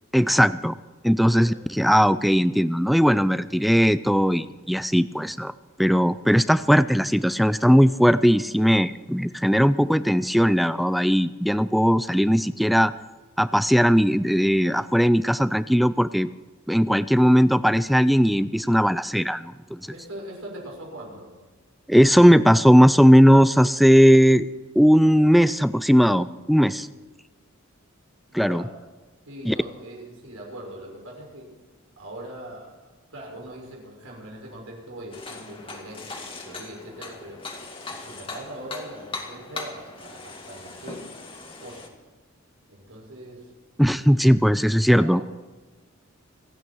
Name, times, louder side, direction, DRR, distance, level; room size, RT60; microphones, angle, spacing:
voice 1, 0.1-0.7 1.0-5.5 5.8-12.9 13.4-16.3 16.7-19.9 21.9-24.5 24.8-26.9 28.3-28.6 29.5-29.6 43.8-45.2, equal, ahead, 15 dB, 0.4 m, -18 dB
voice 2, 19.9-21.3 28.3-28.8 29.3-31.5 32.0-32.7 33.1-37.5 37.9-41.0 41.6-41.9 42.7-43.5 43.9-44.4 44.9-45.2, right 1 dB, 85° right, -1 dB, 6.4 m, -41 dB
sound 1, 35.1-41.9, left 3 dB, 25° left, 2.0 m, -39 dB
27.0 x 9.4 x 4.6 m, 1.3 s
head